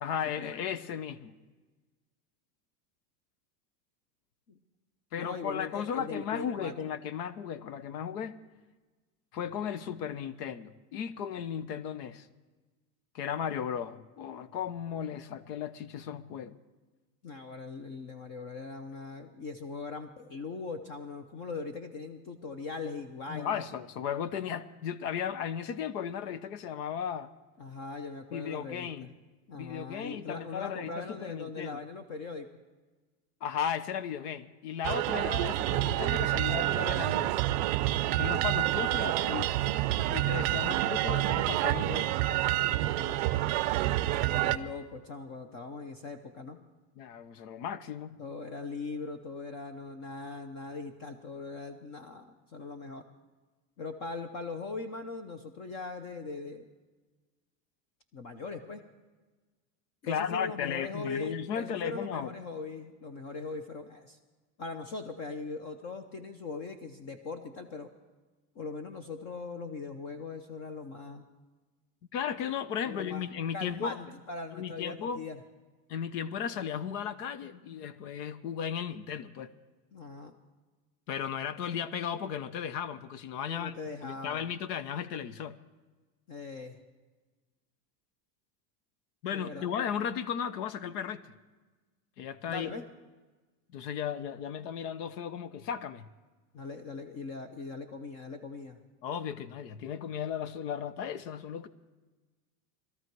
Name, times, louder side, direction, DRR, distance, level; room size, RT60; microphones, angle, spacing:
voice 1, 0.0-1.3 5.1-8.4 9.3-12.3 13.1-16.5 23.3-27.3 28.3-29.1 29.5-31.8 33.4-37.4 38.2-39.6 40.1-42.2 47.0-48.2 60.0-62.4 72.1-74.0 74.5-75.2 75.9-79.5 81.1-83.7 84.0-85.6 89.2-91.2 92.2-92.7 93.7-96.1 99.0-101.7, left 8 dB, 70° left, 14 dB, 1.1 m, -35 dB
voice 2, 5.1-6.7 17.2-23.6 27.6-28.9 29.5-32.5 42.7-43.2 44.4-46.6 48.2-53.0 53.8-56.7 58.1-58.8 60.0-64.2 64.6-67.9 68.5-71.3 72.8-73.2 73.5-75.4 79.9-80.3 83.5-84.4 86.3-86.8 89.3-89.7 92.5-92.8 96.5-98.8, left 4 dB, 35° left, 9 dB, 0.8 m, -40 dB
sound 1, 34.8-44.6, right 15 dB, 45° right, 0.5 m, -28 dB
21.0 x 13.5 x 4.7 m, 1.3 s
supercardioid pair, 160°, 49 cm